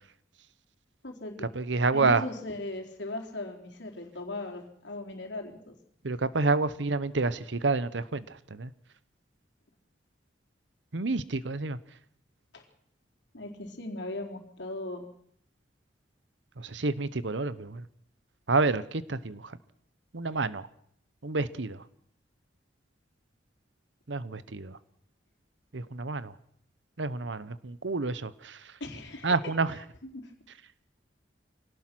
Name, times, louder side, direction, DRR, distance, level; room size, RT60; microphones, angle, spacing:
voice 1, 1.0-1.5 1.9-5.7 12.5-12.6 13.3-15.0 28.8-30.3, left 2 dB, 65° left, 2 dB, 3.9 m, -38 dB
voice 2, 1.6-2.2 6.0-8.2 8.5-8.7 10.9-11.8 16.6-17.8 18.5-19.4 20.1-20.6 21.2-21.8 24.1-24.7 25.7-26.3 27.0-28.6 29.2-29.7, right 3 dB, 70° right, 16 dB, 1.0 m, -28 dB
24.0 x 18.0 x 6.2 m, 0.67 s
head